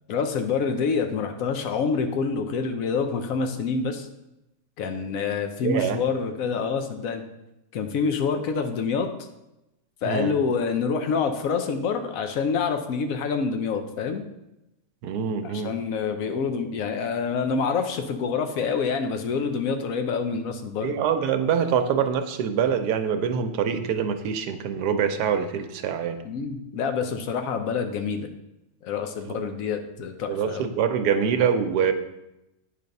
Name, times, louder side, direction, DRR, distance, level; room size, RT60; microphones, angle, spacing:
voice 1, 0.0-4.1 4.8-7.2 7.7-9.1 10.0-14.2 15.4-20.9 26.2-28.3 28.8-30.6, left 5 dB, 65° left, 6 dB, 1.1 m, -27 dB
voice 2, 5.6-6.0 10.0-10.4 15.0-15.7 20.8-26.2 29.3-29.4 30.3-31.9, right 7 dB, 90° right, 8 dB, 1.2 m, -25 dB
9.1 x 3.4 x 5.2 m, 0.91 s
omnidirectional pair, 1.7 m